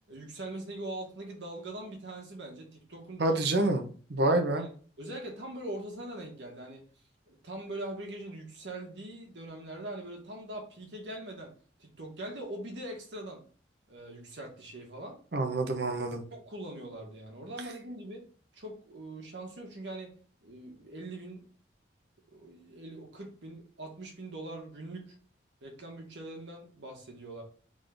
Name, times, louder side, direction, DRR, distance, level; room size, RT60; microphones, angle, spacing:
voice 1, 0.1-3.4 4.3-4.7 5.0-6.8 7.3-11.5 11.8-13.4 13.9-15.2 16.3-18.2 18.5-20.1 20.4-21.4 22.3-25.1 25.6-27.4, right 1 dB, 80° right, 1 dB, 1.4 m, -42 dB
voice 2, 3.2-4.7 15.3-16.2, right 2 dB, 65° right, 5 dB, 0.7 m, -27 dB
3.8 x 3.7 x 3.4 m, 0.42 s
head